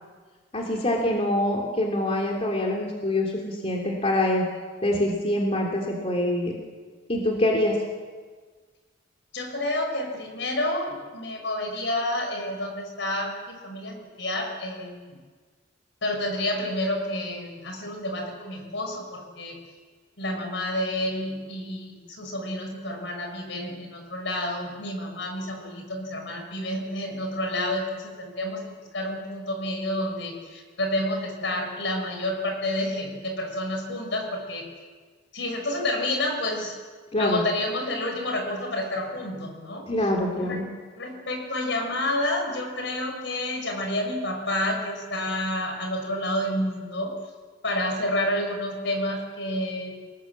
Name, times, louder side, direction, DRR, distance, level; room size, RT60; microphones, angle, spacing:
voice 1, 0.5-4.4 4.8-6.6 7.1-7.8 37.1-37.4 39.9-40.7, left 1 dB, 35° left, 0 dB, 3.0 m, -25 dB
voice 2, 9.3-15.1 16.0-19.6 20.2-28.6 28.9-34.7 35.3-36.7 37.2-39.9 40.4-40.6 41.0-47.1 47.6-50.0, left 1 dB, 70° left, 3 dB, 6.2 m, -29 dB
28.0 x 19.0 x 7.5 m, 1.5 s
head